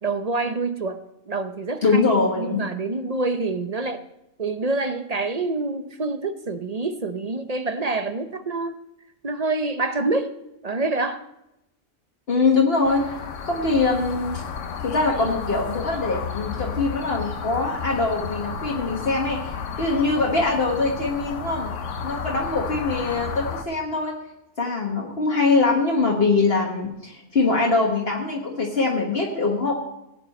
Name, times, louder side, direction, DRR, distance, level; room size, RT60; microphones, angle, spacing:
voice 1, 0.0-2.0 2.4-4.0 4.4-8.8 9.2-10.3 10.6-11.2, right 3 dB, 40° right, 9 dB, 0.7 m, -26 dB
voice 2, 1.8-2.7 3.0-3.1 12.3-14.4 14.8-21.7 22.0-24.1 24.6-29.7, left 3 dB, 55° left, -1 dB, 1.7 m, -23 dB
sound 1, 12.8-23.6, left 6 dB, 90° left, 1.3 m, -32 dB
16.5 x 9.1 x 4.3 m, 0.89 s
omnidirectional pair, 1.2 m